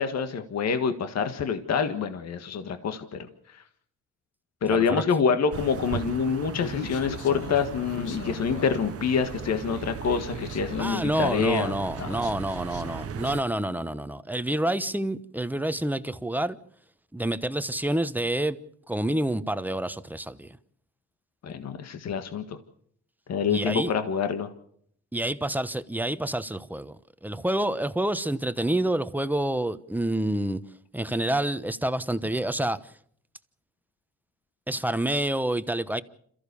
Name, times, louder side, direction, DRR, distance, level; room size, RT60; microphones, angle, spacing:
voice 1, 0.0-3.6 4.6-11.7 12.0-12.2 21.4-22.6 23.3-24.5, left 6 dB, 60° left, 1.7 m, -27 dB
voice 2, 4.7-5.0 10.8-16.6 17.1-18.6 18.9-20.6 23.5-23.9 25.1-26.9 27.2-30.6 30.9-32.9 34.7-36.0, right 1 dB, 5° right, 1.0 m, -28 dB
sound 1, 5.5-13.4, right 8 dB, 50° right, 1.0 m, -37 dB
Human voice, 6.5-13.4, left 7 dB, 85° left, 2.0 m, -41 dB
27.5 x 14.5 x 7.0 m
cardioid pair, 90°, 30 cm